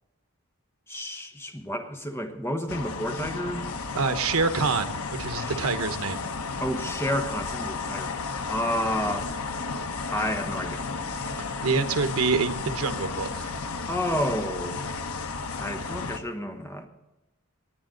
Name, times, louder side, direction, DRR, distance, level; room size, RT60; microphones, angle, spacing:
voice 1, 0.9-3.7 5.4-5.6 6.6-8.1 8.5-9.3 10.1-10.9 11.2-11.3 13.9-14.8 15.6-16.9, equal, 10° left, 5 dB, 1.3 m, -30 dB
sound 1, 2.7-16.2, left 4 dB, 90° left, 1.0 m, -33 dB
voice 2, 3.9-6.2 11.4-13.5, right 4 dB, 90° right, 9 dB, 1.1 m, -26 dB
19.0 x 10.0 x 3.9 m, 0.98 s
head